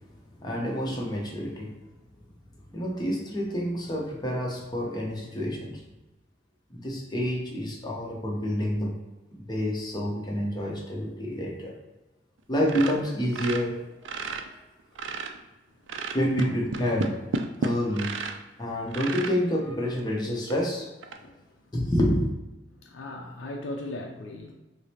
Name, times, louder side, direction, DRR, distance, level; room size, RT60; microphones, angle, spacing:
voice 1, 0.4-1.7 2.7-5.8 6.7-8.9 9.3-11.8 12.5-13.8 16.1-17.2 17.6-18.1 18.6-20.9 21.7-22.3, equal, 25° left, -2 dB, 0.7 m, -28 dB
sound 1, 12.7-14.5 14.8-15.5 15.9-18.4 18.9-19.4 20.0-20.1 20.5-20.6 21.0-21.2, right 4 dB, 80° right, 0.3 m, -32 dB
voice 2, 15.7-16.2 17.5-17.6 18.5-19.1 21.1-21.7 22.7-24.5, left 2 dB, 85° left, 2 dB, 0.4 m, -40 dB
4.8 x 2.0 x 2.8 m, 1.0 s
head